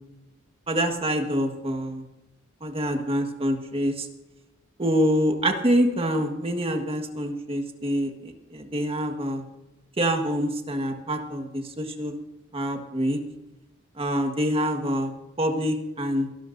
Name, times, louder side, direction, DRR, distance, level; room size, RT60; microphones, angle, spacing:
voice 1, 0.7-2.0 2.6-4.1 4.8-9.4 10.0-12.1 12.5-13.2 14.0-15.1 15.4-16.3, equal, 30° right, 5 dB, 1.6 m, -26 dB
23.0 x 12.5 x 2.7 m, 0.95 s
head